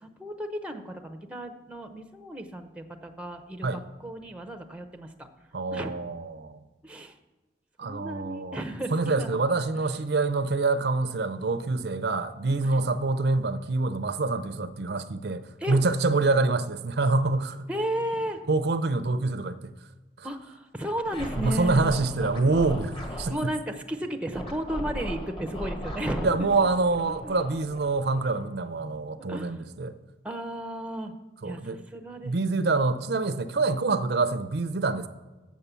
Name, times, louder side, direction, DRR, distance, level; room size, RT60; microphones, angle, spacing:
voice 1, 0.0-5.3 5.7-5.9 6.8-7.2 7.8-9.4 12.6-12.9 15.6-15.8 17.7-18.4 20.2-21.8 23.3-26.4 27.2-27.3 29.3-29.6 30.2-31.1 31.4-32.7, right 1 dB, 5° right, 0.6 m, -34 dB
voice 2, 5.5-6.6 7.8-8.6 8.9-17.6 18.5-19.7 20.2-20.3 21.4-23.5 26.2-30.0 31.4-31.8 32.2-35.1, right 3 dB, 60° right, 0.6 m, -26 dB
Scratching (performance technique), 21.1-23.4 24.3-28.7, equal, 30° left, 1.5 m, -37 dB
7.4 x 7.3 x 6.8 m
head